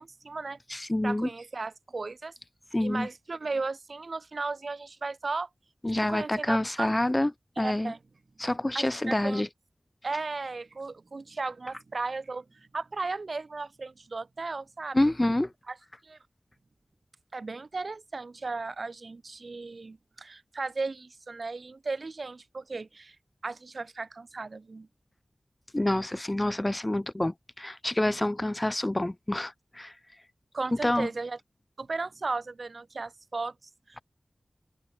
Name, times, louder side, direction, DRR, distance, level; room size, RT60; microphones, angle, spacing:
voice 1, 0.0-0.6 1.0-2.3 2.8-5.5 6.1-6.9 7.6-8.0 8.7-9.4 10.0-12.5 12.7-15.0 15.7-15.8 16.0-16.2 17.3-23.2 23.4-24.9 30.5-31.4 31.8-33.5 33.9-34.0, right 3 dB, 60° right, 2.0 m, -35 dB
voice 2, 0.7-1.3 2.7-3.1 5.8-7.3 7.6-7.9 8.4-9.5 14.9-15.5 25.7-29.9 30.8-31.1, left 1 dB, 20° left, 0.8 m, -27 dB
wide cardioid pair, 75°, 0 cm